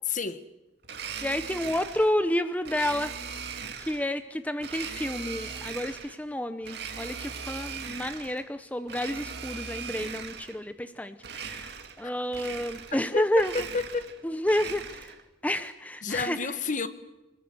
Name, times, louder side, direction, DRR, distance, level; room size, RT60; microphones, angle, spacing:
voice 1, 0.1-0.4 13.1-14.1 16.0-16.9, left 4 dB, 40° left, 1.4 m, -30 dB
Domestic sounds home sounds, 0.8-2.2 2.7-4.1 4.6-6.2 6.6-8.4 8.8-10.6 11.2-12.0 12.3-13.1 13.3-15.2, right 6 dB, 60° right, 2.5 m, -39 dB
voice 2, 1.2-3.1 3.8-13.5 14.2-15.1 15.4-16.5, left 1 dB, 10° left, 0.8 m, -30 dB
26.5 x 20.5 x 8.0 m
head